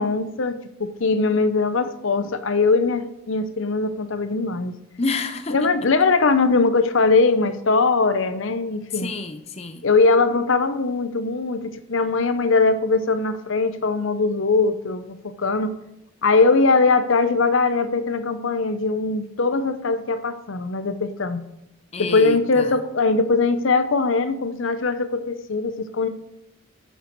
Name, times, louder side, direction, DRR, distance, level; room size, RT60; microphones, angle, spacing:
voice 1, 0.0-4.8 5.5-9.1 9.8-15.8 16.2-21.4 22.0-26.1, left 3 dB, 65° left, 0.7 m, -21 dB
voice 2, 5.0-5.7 8.9-9.9 21.9-22.8, left 3 dB, 30° left, 0.6 m, -29 dB
11.0 x 6.8 x 4.5 m
head